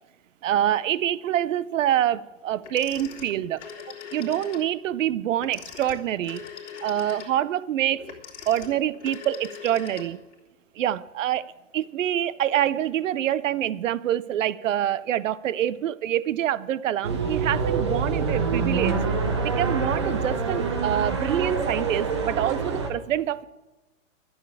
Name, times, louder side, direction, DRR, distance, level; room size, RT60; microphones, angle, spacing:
voice 1, 0.4-3.6 4.1-6.4 6.8-8.1 8.5-10.2 10.8-19.0 19.4-23.4, right 11 dB, 70° right, 0.6 m, -26 dB
Telephone, 2.6-4.7 5.4-10.4, left 8 dB, 60° left, 3.0 m, -41 dB
sound 1, 17.0-22.9, right 4 dB, 20° right, 0.6 m, -26 dB
12.5 x 7.3 x 8.6 m
hypercardioid pair, 175°, 40 cm